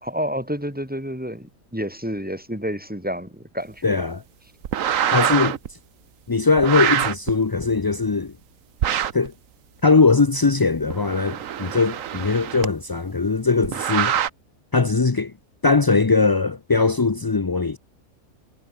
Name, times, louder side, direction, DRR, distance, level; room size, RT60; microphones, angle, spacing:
voice 1, 0.0-4.0, equal, 5° right, 3.5 m, -29 dB
voice 2, 3.8-4.2 5.1-5.6 6.3-8.3 9.1-9.3 9.8-14.1 14.7-15.3 15.6-17.8, left 4 dB, 35° left, 0.3 m, -20 dB
sound 1, 4.6-5.7 6.6-7.3 8.8-9.3 10.8-12.7 13.6-14.3, right 9 dB, 65° right, 1.3 m, -24 dB
omnidirectional pair, 1.5 m